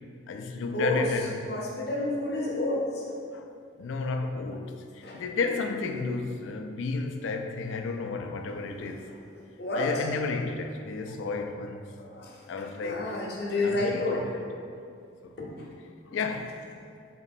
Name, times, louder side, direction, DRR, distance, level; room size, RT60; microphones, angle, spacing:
voice 1, 0.3-1.5 3.3-3.5 3.8-9.1 9.7-11.9 12.5-13.1 13.6-14.2 15.2-15.4 16.1-16.6, left 4 dB, 75° left, 0.3 m, -32 dB
voice 2, 1.5-3.0 5.0-5.2 8.8-8.9 9.6-10.0 12.0-12.4 12.8-14.2 15.4-15.5, left 2 dB, 55° left, 0.7 m, -30 dB
4.0 x 3.0 x 4.2 m
head